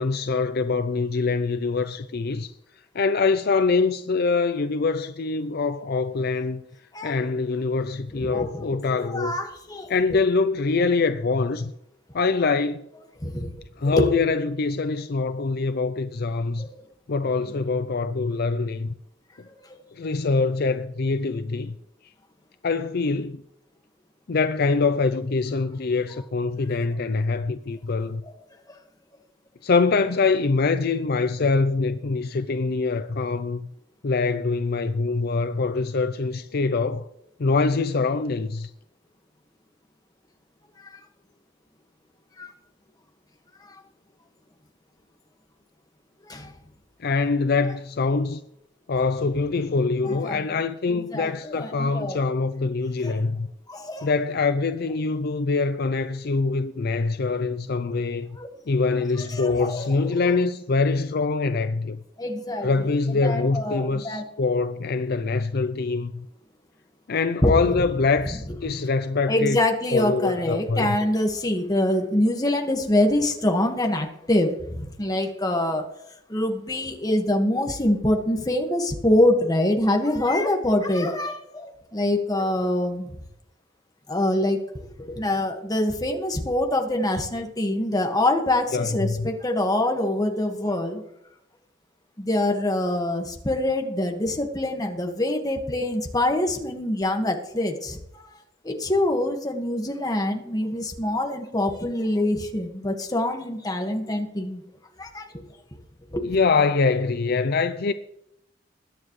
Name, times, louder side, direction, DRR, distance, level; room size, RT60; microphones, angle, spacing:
voice 1, 0.0-2.5 2.9-6.6 7.0-9.3 9.9-11.7 12.1-12.8 13.8-16.7 17.1-18.9 19.9-21.8 22.6-23.4 24.3-28.2 29.6-33.7 34.0-37.1 37.4-38.7 47.0-48.4 48.9-53.5 54.0-58.4 58.7-62.0 62.6-66.3 67.1-69.6 69.9-70.9 88.7-89.3 106.2-107.9, left 4 dB, 55° left, 0.5 m, -24 dB
voice 2, 8.1-9.9 13.2-13.5 13.8-14.1 16.6-16.7 19.6-19.8 40.9-41.0 42.4-42.5 43.7-43.8 46.2-46.5 50.0-50.4 51.1-52.2 53.0-53.1 53.7-54.1 58.4-58.5 59.2-60.1 62.2-62.7 63.2-64.3 67.4-67.8 69.3-75.9 76.3-83.1 84.1-84.6 85.0-91.0 92.2-98.3 98.6-104.6 105.0-105.4 106.1-106.4, left 1 dB, 20° left, 1.7 m, -25 dB
21.5 x 9.7 x 3.2 m
head